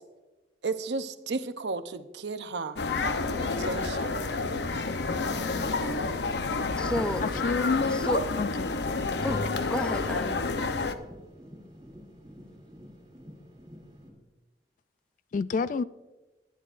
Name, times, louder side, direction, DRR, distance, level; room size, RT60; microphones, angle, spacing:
voice 1, 0.6-2.8 3.6-4.2, right 3 dB, 75° right, 0.7 m, -33 dB
sound 1, 2.8-10.9, left 3 dB, 75° left, 0.7 m, -29 dB
sound 2, 5.1-14.1, equal, 25° right, 3.1 m, -49 dB
voice 2, 5.3-5.7 6.8-7.2 7.9-8.2 9.2-10.4, equal, 5° left, 0.6 m, -33 dB
voice 3, 7.2-7.8 8.4-8.7 15.3-15.8, left 4 dB, 45° left, 0.3 m, -29 dB
20.0 x 10.5 x 2.5 m
head